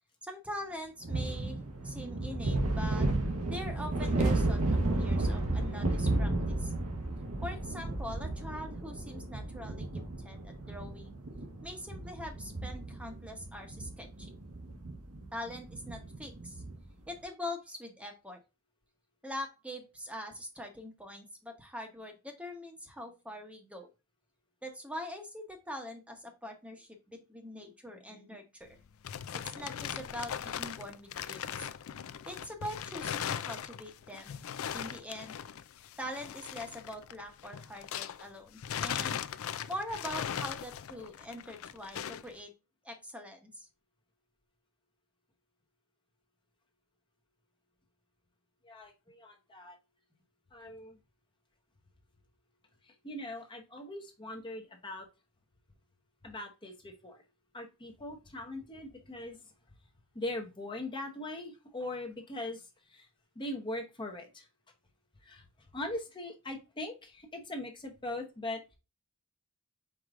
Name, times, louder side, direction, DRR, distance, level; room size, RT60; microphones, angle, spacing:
voice 1, 0.2-3.1 3.5-6.7 7.4-10.0 10.2-11.2 11.6-14.3 15.3-16.6 17.1-18.4 19.2-23.9 24.6-28.8 29.3-31.7 32.3-34.4 34.7-35.4 36.0-39.2 39.7-42.5 42.8-43.7, left 1 dB, 5° right, 4 dB, 0.9 m, -43 dB
sound 1, 1.0-16.9, right 2 dB, 85° right, 1.2 m, -33 dB
sound 2, 28.7-38.3 38.6-42.3, left 9 dB, 65° left, 0.4 m, -39 dB
voice 2, 48.6-49.8 50.5-51.0 52.8-55.1 56.2-57.2 57.5-59.5 60.1-63.1 63.4-64.5 65.2-65.4 65.7-68.8, left 1 dB, 20° left, 2 dB, 0.8 m, -41 dB
4.9 x 4.5 x 2.4 m, 0.28 s
head